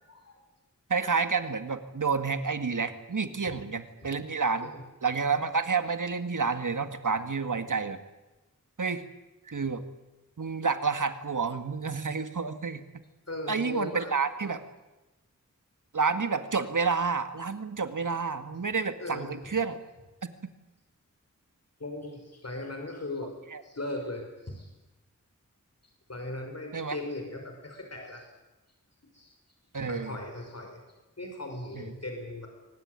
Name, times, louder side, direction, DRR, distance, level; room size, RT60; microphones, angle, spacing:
voice 1, 0.1-0.4 3.4-3.6 4.6-4.8 13.3-14.1 19.0-19.3 21.8-23.3 23.6-24.7 26.1-28.3 29.1-29.3 29.8-30.8 31.2-32.5, left 2 dB, 55° left, 3 dB, 6.1 m, -38 dB
voice 2, 0.9-4.7 5.0-8.0 8.8-9.0 9.5-9.8 10.4-12.8 13.5-14.6 15.9-19.8 23.5-23.6 26.7-27.0 29.7-30.2 31.8-31.9, right 5 dB, 75° right, 9 dB, 2.0 m, -29 dB
23.5 x 19.5 x 9.7 m, 1.1 s
wide cardioid pair, 55°, 31 cm